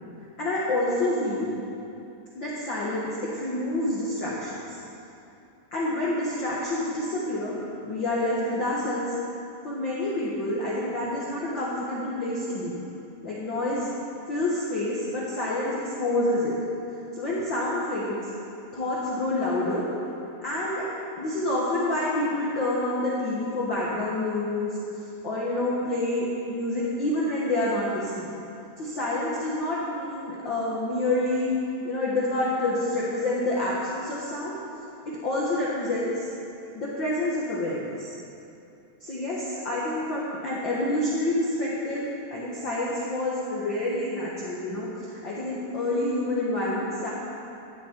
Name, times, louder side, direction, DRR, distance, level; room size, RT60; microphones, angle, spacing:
voice 1, 0.4-1.5 2.3-4.8 5.7-7.5 7.8-9.1 9.6-12.8 13.2-13.9 14.3-16.5 17.1-18.2 18.7-19.8 20.4-20.8 21.2-24.7 25.2-28.3 28.8-31.5 31.8-34.5 35.1-36.3 36.7-38.1 39.0-47.1, left 1 dB, 50° left, -7 dB, 1.5 m, -28 dB
14.5 x 10.5 x 4.5 m, 2.7 s
omnidirectional pair, 4.0 m